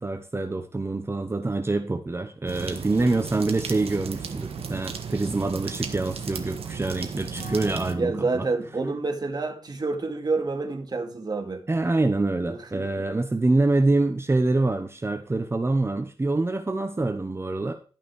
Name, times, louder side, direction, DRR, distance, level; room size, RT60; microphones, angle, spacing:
voice 1, 0.0-8.5 11.7-17.7, right 2 dB, 25° right, 1.0 m, -25 dB
sound 1, 2.5-7.9, right 6 dB, 90° right, 1.3 m, -35 dB
Acoustic guitar / Strum, 7.3-11.3, left 3 dB, 30° left, 6.8 m, -47 dB
voice 2, 8.0-11.6 12.5-12.9, right 3 dB, 45° right, 2.2 m, -28 dB
12.0 x 6.0 x 4.7 m
wide cardioid pair, 90°, 10 cm